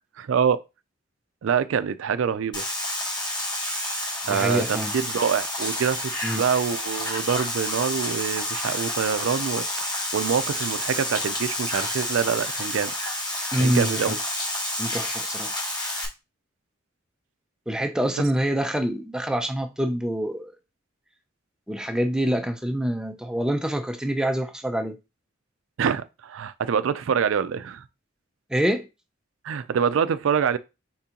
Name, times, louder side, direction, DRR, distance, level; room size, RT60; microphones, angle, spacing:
voice 1, 0.2-0.6 1.4-2.6 4.3-12.9 13.6-14.2 25.8-27.8 29.4-30.6, right 7 dB, 75° right, 0.4 m, -25 dB
sound 1, 2.5-16.1, left 1 dB, 20° left, 0.9 m, -29 dB
voice 2, 4.3-4.9 6.2-6.4 13.5-14.1 14.8-15.5 17.7-20.5 21.7-25.0 28.5-28.9, equal, 5° right, 0.4 m, -26 dB
4.4 x 3.7 x 2.8 m
head